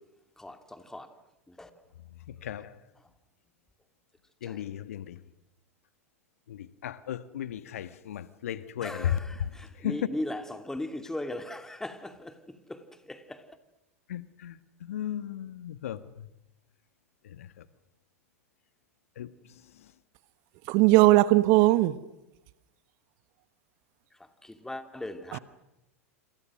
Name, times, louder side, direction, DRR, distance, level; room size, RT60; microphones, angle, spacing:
voice 1, 0.4-1.1 1.6-1.7 8.8-12.3 12.7-12.8 13.1-13.4 24.5-25.4, left 1 dB, 5° left, 2.8 m, -37 dB
voice 2, 2.4-2.7 4.4-5.2 6.5-9.5 9.8-10.1 14.1-16.2 17.3-17.5 19.2-19.3, left 10 dB, 70° left, 1.4 m, -35 dB
voice 3, 20.7-22.0 25.3-25.4, right 18 dB, 50° right, 1.3 m, -19 dB
28.5 x 28.0 x 6.4 m
hypercardioid pair, 95°, 8 cm